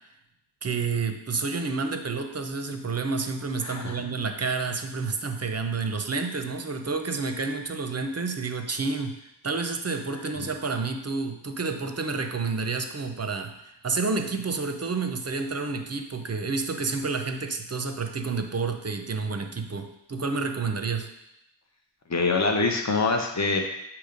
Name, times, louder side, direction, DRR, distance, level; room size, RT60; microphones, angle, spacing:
voice 1, 0.6-9.2 9.4-13.5 13.8-21.1, right 4 dB, 35° right, 6 dB, 0.6 m, -29 dB
voice 2, 3.6-4.0 22.1-23.6, left 3 dB, 40° left, 2 dB, 0.8 m, -24 dB
8.0 x 2.9 x 5.1 m, 0.82 s
wide cardioid pair, 70°, 45 cm